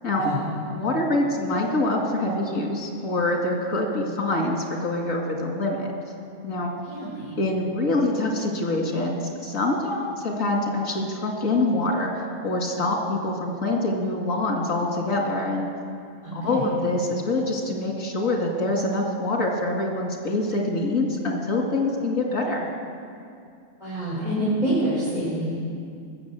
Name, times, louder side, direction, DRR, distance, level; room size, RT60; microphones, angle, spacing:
voice 1, 0.7-5.9 6.4-6.7 7.4-12.1 12.4-15.7 16.3-22.7, left 2 dB, 90° left, 0 dB, 2.4 m, -25 dB
voice 2, 6.9-7.3 7.8-7.9 16.2-16.7 23.8-25.5, right 1 dB, 35° right, -10 dB, 3.8 m, -27 dB
19.0 x 7.2 x 7.9 m, 2.4 s
omnidirectional pair, 1.3 m